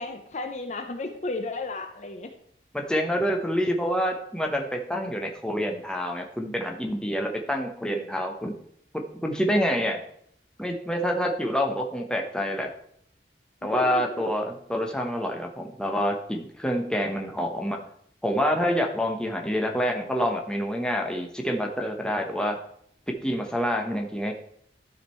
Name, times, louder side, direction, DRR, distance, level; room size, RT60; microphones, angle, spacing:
voice 1, 0.0-2.3 13.6-14.2, left 2 dB, 40° left, 6 dB, 0.7 m, -34 dB
voice 2, 2.7-8.6 8.9-10.0 10.6-12.7 13.6-17.8 18.2-22.6 23.1-24.3, equal, 5° left, 2 dB, 1.0 m, -27 dB
12.0 x 5.1 x 4.4 m, 0.68 s
head